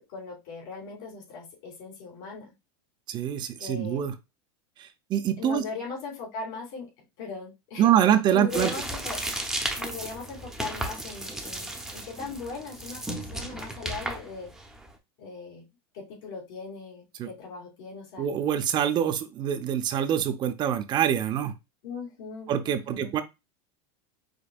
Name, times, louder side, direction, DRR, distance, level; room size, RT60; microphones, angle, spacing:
voice 1, 0.1-2.5 3.6-4.0 5.4-6.9 7.2-7.9 8.3-9.2 9.8-14.5 15.2-15.6 15.9-18.3 21.8-23.1, left 4 dB, 70° left, -2 dB, 3.0 m, -39 dB
voice 2, 3.1-4.1 4.8-5.6 7.8-8.7 17.2-17.3 18.2-21.5 22.5-23.2, right 10 dB, 35° right, 10 dB, 0.6 m, -25 dB
sound 1, 8.5-14.9, right 1 dB, 5° right, 0.8 m, -34 dB
5.2 x 3.9 x 2.4 m, 0.23 s
supercardioid pair, 130°, 13 cm